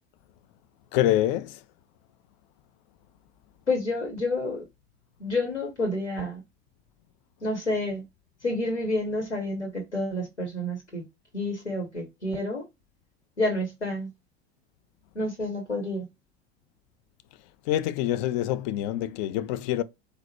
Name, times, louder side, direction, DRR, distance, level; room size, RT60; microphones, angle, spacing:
voice 1, 0.9-1.6 17.7-19.8, left 13 dB, 45° left, 0.5 m, -26 dB
voice 2, 3.7-4.6 5.2-6.4 7.4-8.0 8.4-11.0 11.3-12.6 13.4-14.1 15.1-16.1, left 2 dB, 90° left, 1.0 m, -29 dB
4.0 x 2.1 x 4.2 m
figure-of-eight pair, 80°, 33 cm